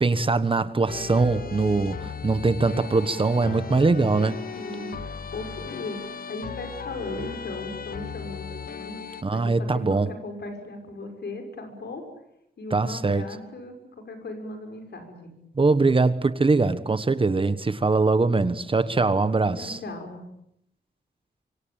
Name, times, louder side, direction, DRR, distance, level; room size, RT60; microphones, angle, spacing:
voice 1, 0.0-4.4 9.2-10.1 12.7-13.2 15.6-19.8, right 3 dB, 30° right, 1.3 m, -22 dB
sound 1, 0.9-9.2, left 6 dB, 55° left, 1.0 m, -37 dB
sound 2, 2.8-8.0, right 1 dB, 15° left, 7.6 m, -50 dB
voice 2, 4.5-12.0 12.6-15.3 19.0-19.2 19.6-20.2, left 2 dB, 75° left, 6.3 m, -37 dB
26.0 x 25.0 x 8.9 m
wide cardioid pair, 175°, 18 cm